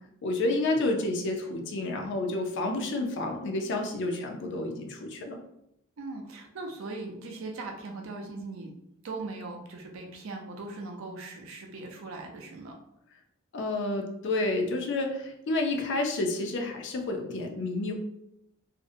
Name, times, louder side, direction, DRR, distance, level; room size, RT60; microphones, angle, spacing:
voice 1, 0.2-5.4 13.5-17.9, left 2 dB, 60° left, 3 dB, 0.4 m, -30 dB
voice 2, 6.0-8.7 9.0-12.7, right 3 dB, 70° right, 2 dB, 0.5 m, -39 dB
2.5 x 2.0 x 2.6 m, 0.78 s
head